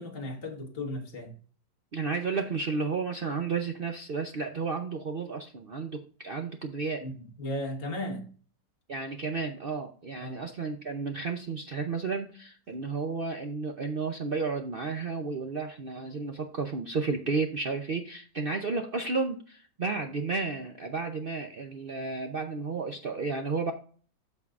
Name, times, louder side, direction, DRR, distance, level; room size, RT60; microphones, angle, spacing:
voice 1, 0.0-1.3 7.0-8.3 10.2-10.4, left 1 dB, 35° left, 1.6 m, -36 dB
voice 2, 1.9-7.1 8.9-23.7, right 4 dB, 75° right, 0.5 m, -32 dB
13.5 x 4.7 x 2.4 m
omnidirectional pair, 2.0 m